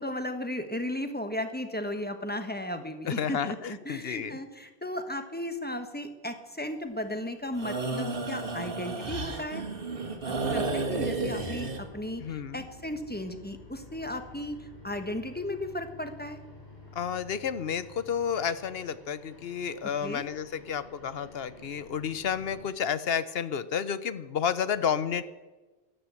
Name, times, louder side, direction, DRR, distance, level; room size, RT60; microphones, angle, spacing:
voice 1, 0.0-9.6 10.3-16.4 20.0-20.2, left 1 dB, 10° left, 7 dB, 1.2 m, -35 dB
voice 2, 3.1-4.4 12.2-12.6 16.9-25.2, left 7 dB, 70° left, 15 dB, 1.0 m, -31 dB
sound 1, 7.5-11.8, right 3 dB, 55° right, 2.0 m, -32 dB
sound 2, 10.3-22.7, left 2 dB, 45° left, 3.7 m, -50 dB
13.5 x 11.5 x 8.2 m, 1.2 s
omnidirectional pair, 1.1 m